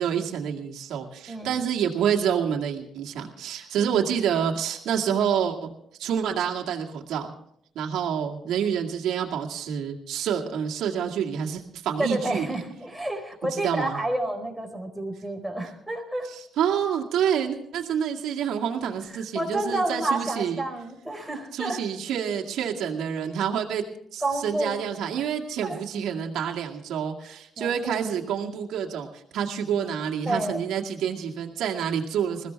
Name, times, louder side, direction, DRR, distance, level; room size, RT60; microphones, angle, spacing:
voice 1, 0.0-5.7 6.0-7.3 7.8-12.5 13.5-14.0 16.3-20.6 21.5-23.8 24.1-32.5, right 8 dB, 80° right, 0 dB, 2.1 m, -28 dB
voice 2, 1.3-1.6 3.9-4.0 12.0-16.3 19.1-21.8 24.2-24.8 25.2-25.3 25.6-25.8 27.6-27.9 30.2-30.6, right 1 dB, ahead, 1 dB, 4.7 m, -30 dB
21.0 x 15.0 x 3.5 m, 0.70 s
cardioid pair, 90°, 0 cm